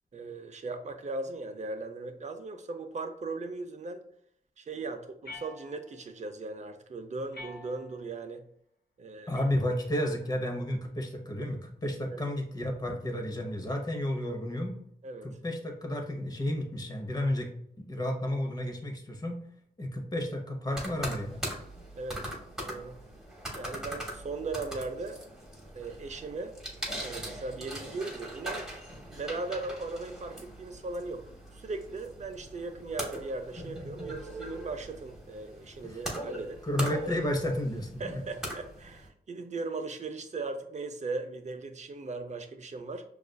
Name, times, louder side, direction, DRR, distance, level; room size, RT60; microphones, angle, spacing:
voice 1, 0.1-4.0 4.6-8.4 9.0-9.4 12.1-12.3 15.0-15.3 22.0-22.3 22.7-23.0 23.6-25.2 25.7-26.5 27.0-28.7 29.2-31.2 31.5-36.6 38.0-43.0, right 3 dB, 45° right, 7 dB, 0.5 m, -38 dB
sound 1, 5.2-6.1 7.3-8.1 9.3-10.2, left 3 dB, 80° left, 0.8 m, -48 dB
voice 2, 9.3-14.8 15.2-17.5 17.8-19.4 19.8-21.4 35.8-36.0 36.6-38.2, left 1 dB, 25° left, 3 dB, 0.8 m, -32 dB
sound 2, 20.7-39.1, right 1 dB, 5° right, 1.1 m, -41 dB
6.4 x 2.4 x 2.2 m, 0.68 s
wide cardioid pair, 100°, 16 cm